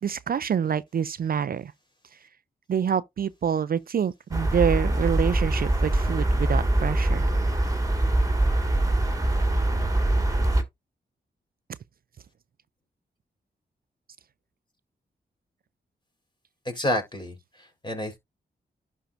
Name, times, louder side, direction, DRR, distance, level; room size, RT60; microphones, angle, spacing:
voice 1, 0.0-1.7 2.7-7.3, right 8 dB, 50° right, 0.4 m, -26 dB
sound 1, 4.3-10.6, right 1 dB, 20° right, 1.8 m, -23 dB
voice 2, 16.6-18.2, left 1 dB, 25° left, 3.9 m, -30 dB
11.5 x 4.6 x 2.5 m
cardioid pair, 45°, 19 cm